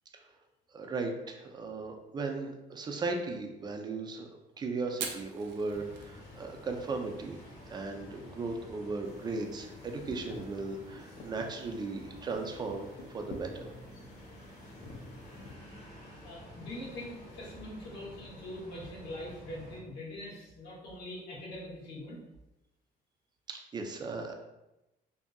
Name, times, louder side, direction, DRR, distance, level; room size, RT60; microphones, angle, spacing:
voice 1, 0.7-4.3 4.6-7.4 7.7-13.7 23.5-24.3, right 3 dB, 25° right, 4 dB, 0.4 m, -37 dB
Fire, 4.9-14.1, right 6 dB, 90° right, 0.4 m, -49 dB
sound 1, 5.7-19.8, left 1 dB, 65° left, 1.2 m, -50 dB
sound 2, 9.0-15.5, left 2 dB, 50° left, 0.4 m, -50 dB
voice 2, 16.2-22.2, left 1 dB, 85° left, -4 dB, 0.9 m, -43 dB
2.7 x 2.4 x 2.2 m, 0.95 s
cardioid pair, 110°, 17 cm